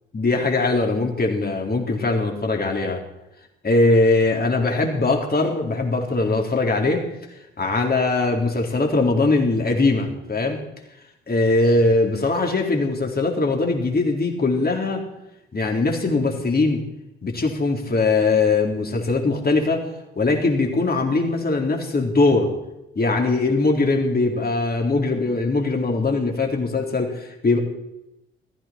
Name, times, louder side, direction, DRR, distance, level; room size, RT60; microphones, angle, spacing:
voice 1, 0.1-3.0 3.6-7.1 7.6-10.6 11.3-15.0 15.5-16.9 17.2-19.9 20.2-22.5 23.0-27.6, left 3 dB, 30° left, 1 dB, 3.9 m, -21 dB
18.5 x 15.0 x 4.5 m, 0.91 s
hypercardioid pair, 45°, 29 cm